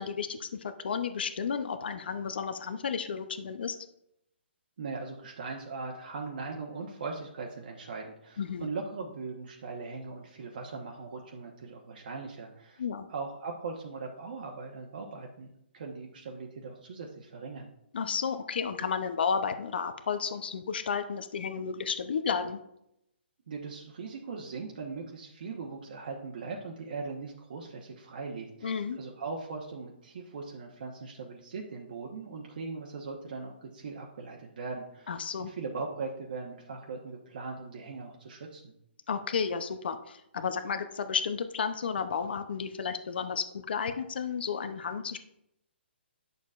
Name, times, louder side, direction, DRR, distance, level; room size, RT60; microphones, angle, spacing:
voice 1, 0.0-3.8 8.4-8.7 12.8-13.1 17.9-22.6 28.6-29.0 35.1-35.5 39.1-45.2, left 6 dB, 60° left, 8 dB, 0.7 m, -32 dB
voice 2, 4.8-12.8 13.1-15.5 15.7-17.7 23.5-38.7, right 4 dB, 50° right, 0 dB, 1.1 m, -40 dB
10.0 x 6.7 x 2.5 m, 0.79 s
hypercardioid pair, 170°, 6 cm